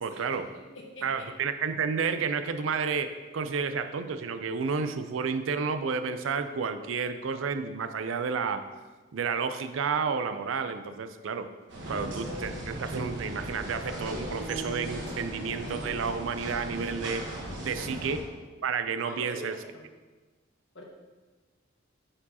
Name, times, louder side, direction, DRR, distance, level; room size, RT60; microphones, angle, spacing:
voice 1, 0.0-0.5 1.0-8.6 9.1-11.5 11.9-17.2 17.6-18.2 18.6-19.5, right 5 dB, 85° right, 9 dB, 0.4 m, -31 dB
voice 2, 0.5-1.3 17.8-17.9 19.0-19.9 20.7-20.8, left 1 dB, 75° left, -1 dB, 1.3 m, -44 dB
sound 1, 11.7-18.2, right 1 dB, 65° right, 1.2 m, -37 dB
8.6 x 4.5 x 2.9 m, 1.3 s
head